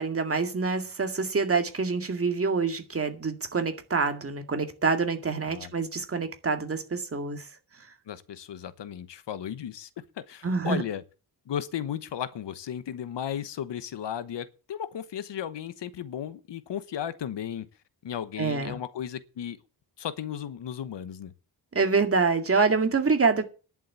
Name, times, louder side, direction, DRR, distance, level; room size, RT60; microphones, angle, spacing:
voice 1, 0.0-7.5 10.4-10.8 18.4-18.8 21.7-23.4, right 4 dB, 35° right, 2.1 m, -26 dB
voice 2, 5.4-5.7 8.1-9.9 10.2-11.0 11.5-17.7 18.0-19.6 20.0-21.3, left 9 dB, 85° left, 1.1 m, -35 dB
11.0 x 7.5 x 8.3 m
wide cardioid pair, 160°, 41 cm